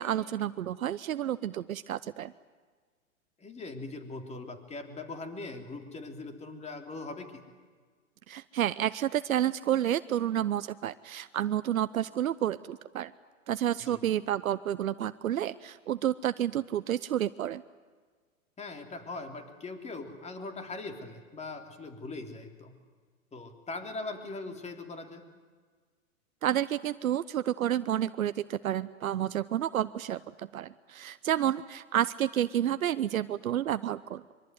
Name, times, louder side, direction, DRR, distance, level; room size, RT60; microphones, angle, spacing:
voice 1, 0.0-2.3 8.3-13.1 13.5-17.6 26.4-30.2 30.5-34.2, right 11 dB, 75° right, 13 dB, 0.9 m, -30 dB
voice 2, 3.4-7.4 13.8-14.0 18.6-22.7 23.3-25.2, left 3 dB, 15° left, 6 dB, 3.5 m, -41 dB
24.5 x 24.0 x 9.4 m, 1.5 s
hypercardioid pair, 115°, 42 cm